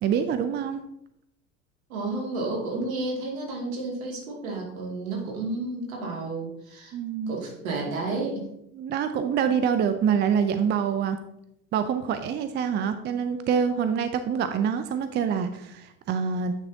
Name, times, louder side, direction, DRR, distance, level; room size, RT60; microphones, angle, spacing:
voice 1, 0.0-0.8 6.9-7.3 8.7-11.2 11.7-16.6, right 7 dB, 25° right, 10 dB, 0.5 m, -26 dB
voice 2, 1.9-7.0 7.3-8.5, right 2 dB, 70° right, -1 dB, 2.5 m, -31 dB
9.7 x 6.1 x 2.8 m, 0.78 s
figure-of-eight pair, 70°, 44 cm